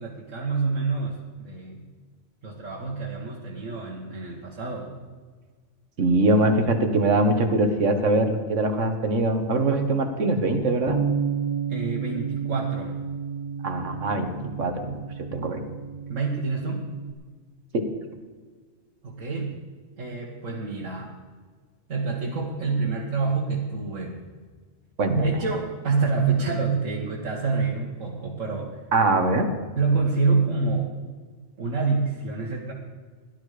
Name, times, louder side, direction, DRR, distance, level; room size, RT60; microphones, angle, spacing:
voice 1, 0.0-1.8 2.4-4.9 11.7-13.0 16.1-16.9 19.0-19.6 20.0-21.1 21.9-24.2 25.1-28.7 29.8-30.9 31.6-32.7, right 4 dB, 85° right, -3 dB, 2.1 m, -27 dB
voice 2, 6.0-11.0 13.6-15.6 25.0-25.1 28.9-29.5, right 2 dB, 70° right, 6 dB, 1.8 m, -22 dB
Bass guitar, 10.9-17.1, right 7 dB, 30° right, 0.7 m, -31 dB
17.0 x 11.0 x 5.0 m, 1.5 s
omnidirectional pair, 1.3 m